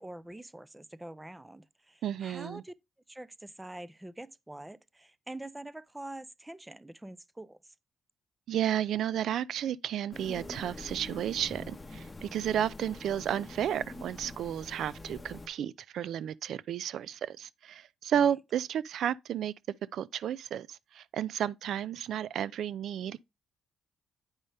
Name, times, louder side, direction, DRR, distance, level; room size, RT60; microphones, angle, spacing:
voice 1, 0.0-2.7 3.1-7.6 12.3-12.4, right 1 dB, 10° right, 0.4 m, -45 dB
voice 2, 2.0-2.6 8.5-19.5 19.9-23.2, right 10 dB, 70° right, 0.3 m, -32 dB
sound 1, 10.1-15.5, left 2 dB, 20° left, 0.8 m, -45 dB
8.9 x 5.4 x 3.3 m
cardioid pair, 90°, 0 cm